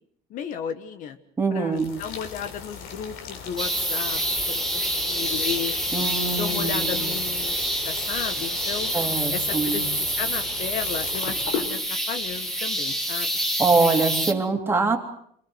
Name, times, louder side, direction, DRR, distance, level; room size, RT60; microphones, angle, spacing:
voice 1, 0.3-1.2 1.5-4.2 4.5-4.8 5.1-5.7 6.3-7.5 7.8-8.9 9.3-9.9 10.2-13.3, left 8 dB, 55° left, 10 dB, 1.5 m, -34 dB
voice 2, 1.4-1.9 5.9-7.1 8.9-9.8 13.6-15.0, right 4 dB, 15° right, 3 dB, 3.2 m, -24 dB
sound 1, 1.7-11.7, left 6 dB, 80° left, 4.2 m, -37 dB
sound 2, 3.6-14.3, right 1 dB, ahead, 1.9 m, -27 dB
27.5 x 20.5 x 8.0 m, 0.68 s
cardioid pair, 165°, 16 cm